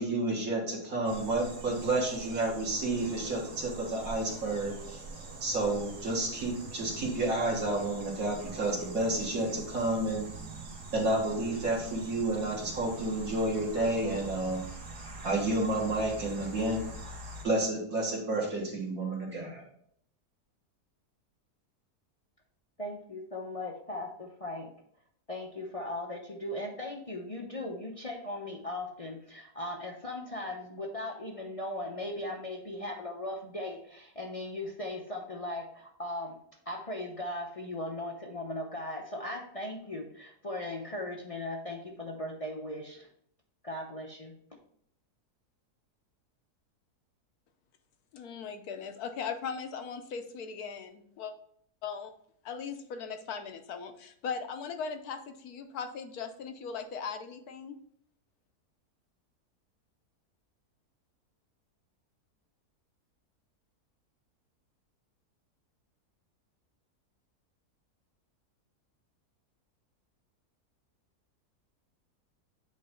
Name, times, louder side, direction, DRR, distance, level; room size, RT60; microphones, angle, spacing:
voice 1, 0.0-5.0 5.4-10.3 10.9-14.6 15.2-16.8 17.4-19.6, right 2 dB, 60° right, -3 dB, 1.9 m, -30 dB
sound 1, 1.0-17.4, right 3 dB, 80° right, 1.8 m, -44 dB
voice 2, 22.8-24.7 25.3-36.4 36.7-43.1 43.6-44.4, left 1 dB, 35° left, 0 dB, 0.5 m, -38 dB
voice 3, 48.1-51.3 51.8-52.1 52.4-57.8, left 6 dB, 75° left, 7 dB, 1.2 m, -39 dB
8.3 x 3.3 x 4.3 m, 0.66 s
omnidirectional pair, 1.7 m